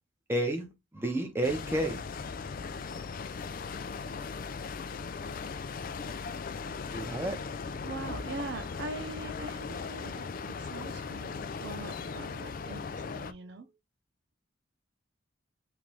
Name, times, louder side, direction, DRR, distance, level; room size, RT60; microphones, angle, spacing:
voice 1, 0.3-2.0 6.9-7.4, right 1 dB, 10° right, 1.2 m, -31 dB
sound 1, 1.4-13.3, left 5 dB, 50° left, 0.4 m, -38 dB
voice 2, 7.8-13.7, right 2 dB, 65° right, 0.5 m, -42 dB
3.7 x 3.3 x 3.1 m
head